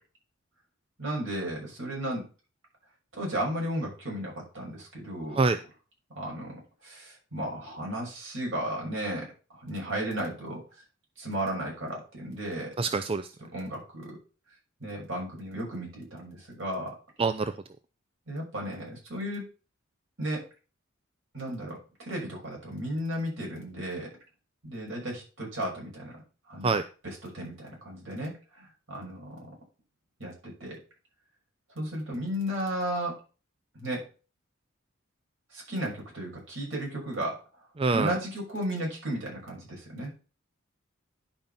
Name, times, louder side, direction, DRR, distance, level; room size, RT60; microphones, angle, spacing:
voice 1, 1.0-2.2 3.1-5.4 6.1-10.6 11.2-12.7 13.5-14.2 14.8-16.9 18.3-19.4 20.2-20.4 21.3-24.1 24.6-26.2 26.5-26.7 27.3-29.5 30.2-30.8 31.7-33.2 33.7-34.0 35.5-37.4 37.9-40.1, right 1 dB, 65° right, -2 dB, 6.4 m, -34 dB
voice 2, 12.8-13.3 17.2-17.5 26.6-26.8 37.8-38.2, right 4 dB, 25° right, 10 dB, 0.4 m, -25 dB
10.5 x 5.3 x 5.7 m, 0.36 s
head